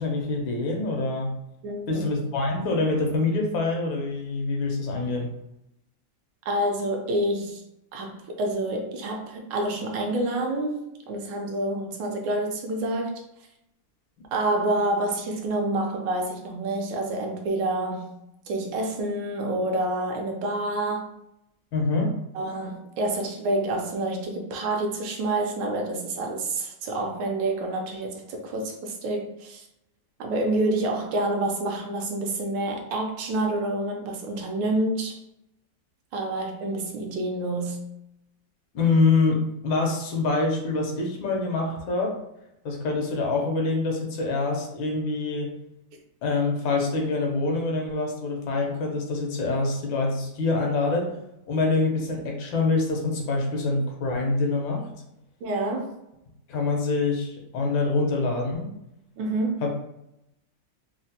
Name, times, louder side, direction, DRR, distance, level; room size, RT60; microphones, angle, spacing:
voice 1, 0.0-1.3 1.9-5.3 21.7-22.1 38.7-42.1 42.6-45.5 46.2-51.2 51.5-54.9 56.5-58.7 59.6-59.7, left 3 dB, 90° left, 1 dB, 1.5 m, -25 dB
voice 2, 1.6-2.1 6.5-7.6 7.9-13.2 14.3-18.2 18.5-21.1 22.3-29.7 30.2-35.2 36.1-37.8 55.4-55.9 59.2-59.7, right 2 dB, 75° right, 2 dB, 1.2 m, -28 dB
3.8 x 2.1 x 2.7 m, 0.83 s
omnidirectional pair, 2.1 m